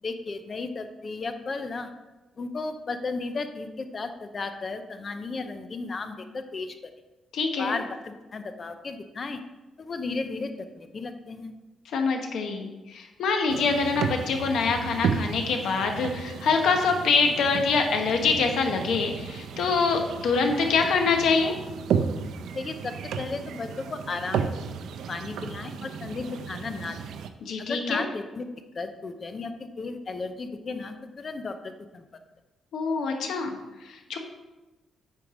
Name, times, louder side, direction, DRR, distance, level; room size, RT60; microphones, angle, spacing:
voice 1, 0.0-1.9 2.4-6.7 7.6-9.4 9.8-10.5 10.8-11.5 22.5-24.5 25.1-27.0 27.6-28.4 28.7-32.0, left 3 dB, 30° left, 8 dB, 0.6 m, -34 dB
voice 2, 7.3-7.8 11.8-21.5 27.4-28.0 32.7-34.2, left 4 dB, 75° left, 4 dB, 1.1 m, -25 dB
sound 1, 13.5-27.3, right 6 dB, 85° right, 0.6 m, -33 dB
8.6 x 4.6 x 5.0 m, 1.1 s
cardioid pair, 155°, 0 cm